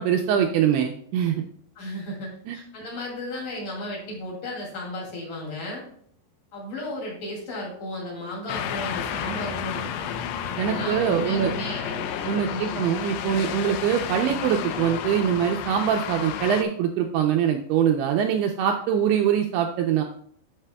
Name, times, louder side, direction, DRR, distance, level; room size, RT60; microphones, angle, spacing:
voice 1, 0.0-1.4 2.5-2.6 10.6-11.5 12.3-20.0, right 9 dB, 80° right, 3 dB, 2.4 m, -23 dB
voice 2, 1.8-5.9 6.5-10.1 10.6-12.1 12.4-12.8, left 1 dB, 50° left, -4 dB, 3.8 m, -34 dB
sound 1, 8.5-16.6, left 8 dB, 80° left, 2.5 m, -31 dB
11.0 x 6.6 x 2.2 m, 0.63 s
omnidirectional pair, 5.0 m